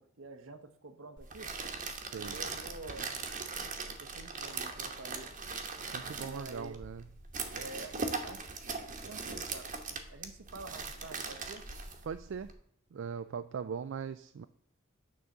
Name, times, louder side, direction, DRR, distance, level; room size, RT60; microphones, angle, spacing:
voice 1, 0.0-1.5 2.2-3.1 3.9-5.3 6.2-6.8 7.5-8.5 9.0-11.6 13.5-13.6, right 2 dB, 80° right, 8 dB, 0.9 m, -48 dB
sound 1, 1.2-12.5, right 4 dB, 40° right, 1.0 m, -40 dB
voice 2, 2.0-2.4 5.8-7.0 12.0-12.5 12.9-14.4, right 6 dB, 65° right, 11 dB, 0.4 m, -40 dB
9.5 x 3.8 x 6.6 m, 0.66 s
head